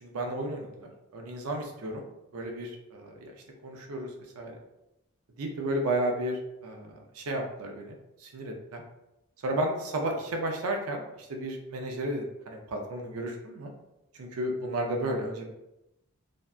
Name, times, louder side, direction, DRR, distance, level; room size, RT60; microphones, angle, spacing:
voice 1, 0.0-2.0 2.3-3.3 3.6-4.1 4.4-4.5 5.4-8.0 8.2-8.8 9.4-13.7 14.2-15.5, right 1 dB, 90° right, 2 dB, 0.5 m, -33 dB
2.6 x 2.2 x 2.3 m, 0.91 s
head